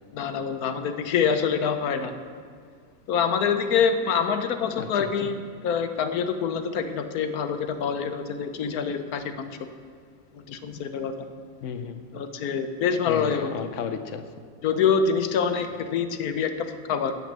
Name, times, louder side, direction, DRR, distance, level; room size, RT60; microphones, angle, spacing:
voice 1, 0.1-2.1 3.1-5.3 5.6-9.5 10.3-11.2 12.1-13.7 14.6-17.1, left 6 dB, 75° left, 8 dB, 1.2 m, -26 dB
voice 2, 4.8-5.3 11.6-12.0 13.1-14.3, left 7 dB, 60° left, 9 dB, 1.0 m, -33 dB
9.1 x 8.1 x 7.4 m, 2.1 s
omnidirectional pair, 1.6 m